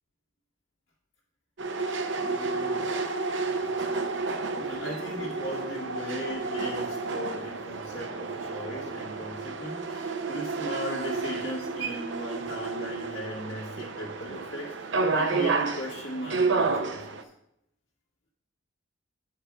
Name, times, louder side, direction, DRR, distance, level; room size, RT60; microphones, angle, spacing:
sound 1, 1.6-17.2, right 3 dB, 60° right, 0.7 m, -31 dB
voice 1, 2.2-2.9 4.6-17.2, equal, 50° left, -7 dB, 1.9 m, -38 dB
8.6 x 4.7 x 5.4 m, 0.80 s
head